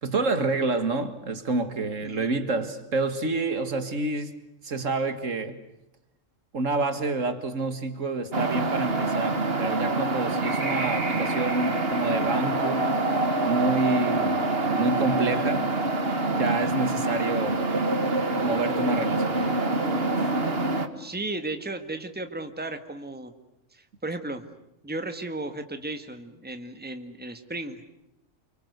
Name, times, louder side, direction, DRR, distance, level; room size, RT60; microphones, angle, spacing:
voice 1, 0.0-4.4 4.6-5.6 6.5-12.9 13.4-15.7 16.3-17.7 18.4-19.6, right 3 dB, 75° right, 2.2 m, -28 dB
sound 1, 8.3-20.9, right 2 dB, 50° right, 2.1 m, -26 dB
voice 2, 21.0-23.3 23.7-24.4 24.8-27.8, right 2 dB, 5° right, 1.9 m, -35 dB
29.0 x 25.0 x 8.2 m
omnidirectional pair, 1.3 m